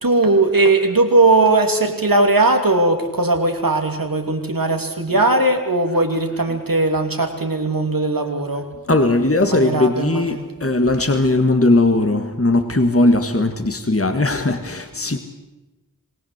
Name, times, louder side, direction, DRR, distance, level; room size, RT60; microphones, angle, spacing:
voice 1, 0.0-8.7 9.4-10.5, right 2 dB, 85° right, 4 dB, 2.9 m, -18 dB
voice 2, 8.9-15.2, left 2 dB, 40° left, 7 dB, 1.7 m, -18 dB
26.5 x 18.5 x 8.0 m, 1.1 s
wide cardioid pair, 40°, 34 cm